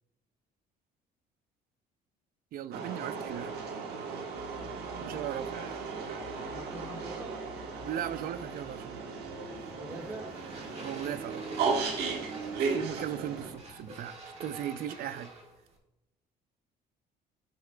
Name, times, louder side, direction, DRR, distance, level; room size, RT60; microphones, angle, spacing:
voice 1, 2.5-3.6 5.0-5.8 7.8-9.1 10.8-11.5 12.6-15.3, right 10 dB, 60° right, 0.4 m, -38 dB
sound 1, 2.7-13.5, right 5 dB, 75° right, 1.3 m, -36 dB
sound 2, 3.1-14.0, left 5 dB, 70° left, 1.0 m, -54 dB
voice 2, 6.5-7.4 9.7-10.4, right 1 dB, 10° right, 1.5 m, -46 dB
sound 3, 10.3-15.8, right 2 dB, 40° right, 1.6 m, -47 dB
13.0 x 4.8 x 2.2 m
cardioid pair, 110°, 17 cm